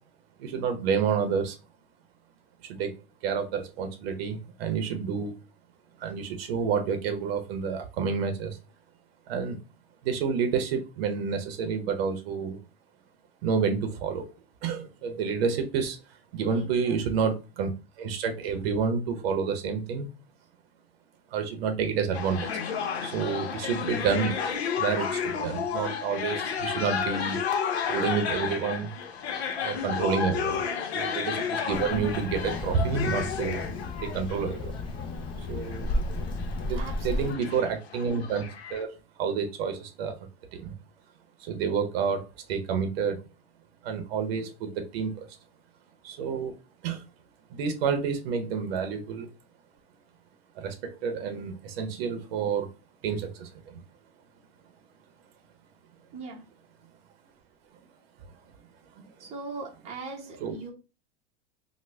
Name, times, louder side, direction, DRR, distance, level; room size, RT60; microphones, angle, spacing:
voice 1, 0.4-1.6 2.6-2.9 3.2-5.3 6.0-8.6 9.3-9.6 10.0-12.6 13.4-14.3 14.6-16.0 16.3-17.7 18.0-20.1 21.3-22.5 23.0-24.4 24.8-27.4 27.9-28.9 29.6-30.6 30.9-33.7 34.0-34.7 35.4-36.0 36.6-38.4 38.7-40.2 40.5-40.7 41.4-43.2 43.8-45.4 46.0-46.6 46.8-47.0 47.5-49.3 50.6-52.7 53.0-53.8 60.4-60.6, right 6 dB, 70° right, 6 dB, 0.7 m, -29 dB
voice 2, 16.5-17.3 30.5-30.8 32.8-33.1 36.8-37.5 56.1-56.4 59.2-60.7, right 3 dB, 20° right, -1 dB, 0.6 m, -41 dB
sound 1, 22.1-38.8, left 7 dB, 90° left, 0.7 m, -32 dB
Child speech kid speaking, 31.7-37.3, left 2 dB, 20° left, 0.3 m, -33 dB
3.2 x 2.1 x 3.3 m, 0.30 s
supercardioid pair, 130°, 31 cm